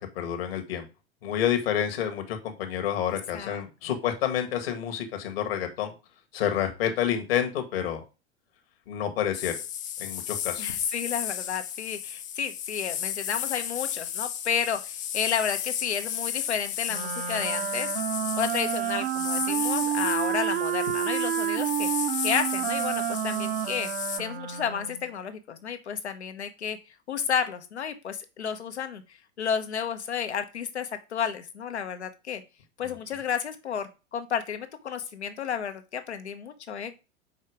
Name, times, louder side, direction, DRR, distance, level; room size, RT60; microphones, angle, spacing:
voice 1, 0.2-0.9 1.2-5.9 6.3-8.0 8.9-9.5 10.0-10.7 32.8-33.0, left 9 dB, 60° left, 6 dB, 1.8 m, -29 dB
sound 1, 9.3-24.2, left 10 dB, 25° left, 0.6 m, -34 dB
voice 2, 10.6-18.0 18.4-21.9 22.2-23.9 24.2-26.8 27.1-29.0 29.4-32.4 32.8-36.9, left 7 dB, 75° left, 8 dB, 1.2 m, -31 dB
Wind instrument woodwind instrument, 16.9-25.1, right 12 dB, 60° right, 1.0 m, -29 dB
5.6 x 4.6 x 4.9 m, 0.30 s
figure-of-eight pair, 90°, 34 cm